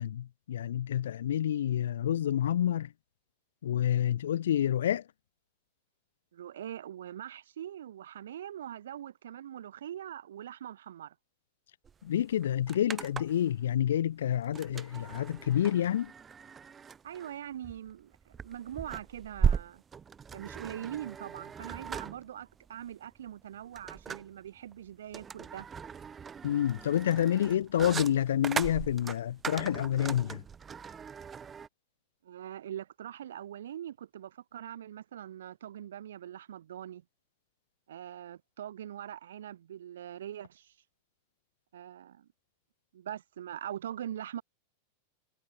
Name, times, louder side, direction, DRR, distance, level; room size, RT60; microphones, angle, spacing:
voice 1, 0.0-2.9 3.6-5.1 12.0-16.1 26.4-30.4, left 10 dB, 60° left, 0.6 m, -28 dB
voice 2, 6.3-11.1 17.0-19.8 20.3-25.7 32.2-37.0 37.9-40.7 41.7-42.3 42.9-44.4, right 10 dB, 60° right, 3.4 m, -42 dB
sound 1, 11.9-12.0 12.2-13.5 14.5-31.7, right 6 dB, 20° right, 0.3 m, -38 dB
figure-of-eight pair, 90°, 0 cm